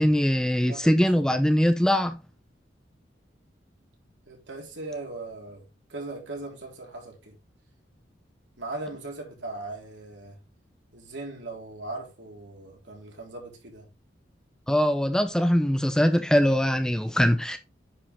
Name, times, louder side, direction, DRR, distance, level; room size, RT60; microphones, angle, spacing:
voice 1, 0.0-2.2 14.7-17.6, equal, 5° left, 0.6 m, -22 dB
voice 2, 0.7-1.3 4.3-5.6 5.9-7.4 8.6-10.4 10.9-13.9, right 2 dB, 70° right, 3.6 m, -39 dB
9.8 x 5.1 x 3.7 m
head